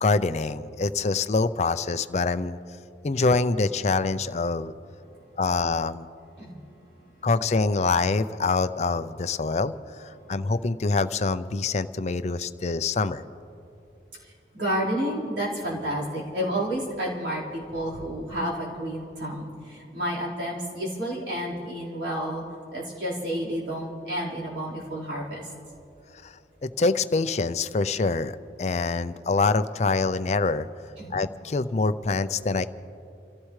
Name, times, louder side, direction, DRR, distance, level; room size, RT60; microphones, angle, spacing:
voice 1, 0.0-2.6 3.0-4.7 5.4-6.1 7.2-9.7 10.0-13.2 26.2-26.3 26.6-30.7 31.1-32.7, left 3 dB, 40° left, 12 dB, 0.4 m, -25 dB
voice 2, 14.2-22.4 22.7-25.5 31.0-31.2, equal, 80° right, -6 dB, 4.5 m, -30 dB
29.0 x 15.0 x 3.2 m, 2.8 s
head